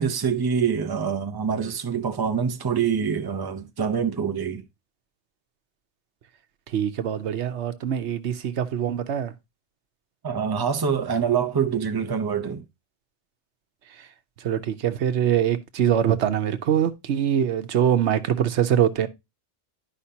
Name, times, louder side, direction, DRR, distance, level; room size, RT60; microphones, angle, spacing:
voice 1, 0.0-4.6 10.2-12.7, right 7 dB, 25° right, 0.6 m, -25 dB
voice 2, 6.7-9.3 14.4-19.1, right 9 dB, 85° right, 1.1 m, -23 dB
11.5 x 5.1 x 2.8 m
omnidirectional pair, 1.1 m